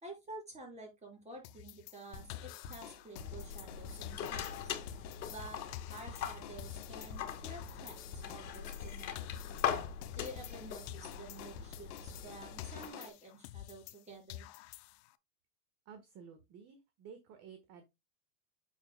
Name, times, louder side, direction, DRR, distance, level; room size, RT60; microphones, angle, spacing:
voice 1, 0.0-4.8 5.3-9.4 10.2-14.5, right 1 dB, 15° right, 0 dB, 5.1 m, -50 dB
sound 1, 1.4-3.8 4.0-7.2 7.4-10.6 10.9-14.0 14.3-15.1, left 15 dB, 45° left, 0.5 m, -50 dB
sound 2, 2.1-13.1, left 7 dB, 60° left, 2.0 m, -50 dB
sound 3, 3.1-12.9, left 8 dB, 90° left, 2.0 m, -42 dB
voice 2, 15.8-17.8, right 7 dB, 30° right, 8 dB, 1.3 m, -53 dB
8.5 x 6.7 x 2.2 m, 0.22 s
supercardioid pair, 140°, 50 cm